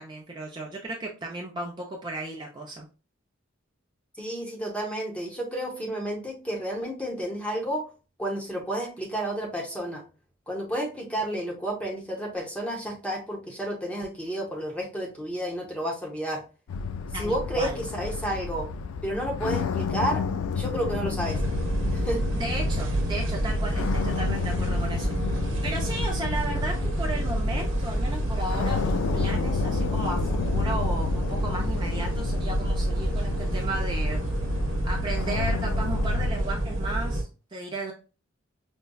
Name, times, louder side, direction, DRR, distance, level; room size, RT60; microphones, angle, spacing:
voice 1, 0.0-2.9 17.1-17.8 22.3-34.2 34.8-37.9, right 2 dB, 20° right, -1 dB, 0.5 m, -35 dB
voice 2, 4.2-7.9 8.2-10.0 10.5-16.4 17.1-18.7 19.0-20.2 20.5-21.4 21.9-22.2, right 1 dB, 5° left, 0 dB, 0.8 m, -31 dB
sound 1, 16.7-36.3, left 5 dB, 80° left, 0.4 m, -31 dB
sound 2, 21.2-37.2, right 1 dB, 65° right, 1.0 m, -28 dB
5.1 x 2.2 x 2.2 m, 0.33 s
head